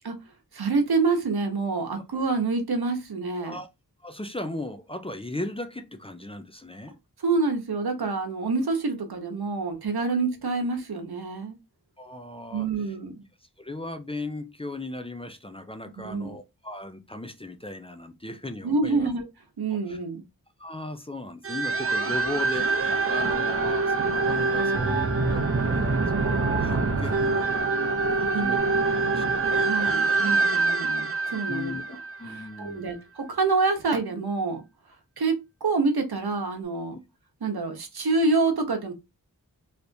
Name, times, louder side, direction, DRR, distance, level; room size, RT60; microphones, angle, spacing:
voice 1, 0.5-3.6 7.2-11.6 12.5-13.2 16.0-16.3 18.6-19.3 19.6-20.2 28.3-28.7 29.6-32.0 32.2-34.6 35.2-37.0 37.4-38.9, right 3 dB, 85° right, 0.9 m, -27 dB
voice 2, 4.0-6.9 10.1-10.2 12.0-12.7 13.6-19.1 19.7-20.0 20.6-28.6 29.1-29.7 31.5-33.0, left 2 dB, 15° left, 0.4 m, -37 dB
sound 1, 21.4-32.7, right 3 dB, 40° right, 0.6 m, -25 dB
sound 2, 23.1-24.1 24.7-25.8 26.2-27.2 28.5-28.6, right 7 dB, 90° left, 0.7 m, -39 dB
3.4 x 2.9 x 2.6 m
wide cardioid pair, 65°, 37 cm